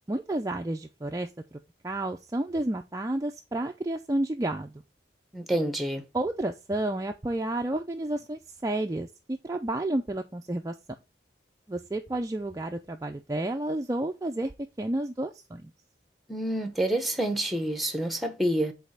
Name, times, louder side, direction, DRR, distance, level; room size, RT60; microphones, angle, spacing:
voice 1, 0.1-4.8 6.1-10.8 11.7-14.5 14.8-15.7, right 1 dB, 20° right, 0.4 m, -31 dB
voice 2, 5.3-6.0 16.3-18.7, right 1 dB, ahead, 0.8 m, -28 dB
5.2 x 4.1 x 5.7 m
head